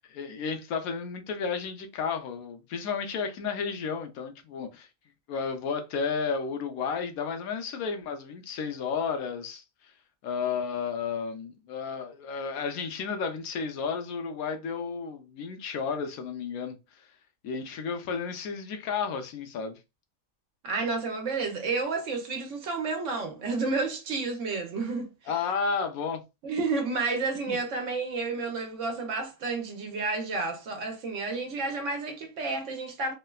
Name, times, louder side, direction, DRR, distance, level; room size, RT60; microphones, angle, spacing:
voice 1, 0.0-4.9 5.3-9.6 10.2-17.1 17.4-19.8 25.3-26.2 27.5-27.6, left 5 dB, 85° left, 1.1 m, -32 dB
voice 2, 20.6-25.1 26.4-33.1, right 3 dB, 65° right, 1.0 m, -31 dB
3.2 x 2.1 x 2.2 m
omnidirectional pair, 1.5 m